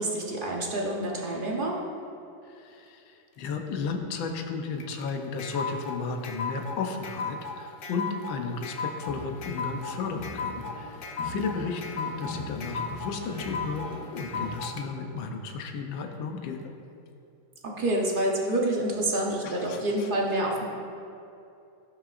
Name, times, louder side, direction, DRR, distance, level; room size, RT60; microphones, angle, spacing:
voice 1, 0.0-1.7 17.6-20.7, right 1 dB, 55° right, -2 dB, 0.5 m, -27 dB
voice 2, 2.5-11.0 11.2-16.7 19.4-20.1, left 4 dB, 70° left, 4 dB, 1.5 m, -34 dB
sound 1, 4.8-14.8, left 4 dB, 85° left, 0.8 m, -36 dB
sound 2, 9.0-14.6, left 2 dB, 35° left, 0.8 m, -42 dB
17.5 x 6.0 x 2.5 m, 2.7 s
omnidirectional pair, 2.4 m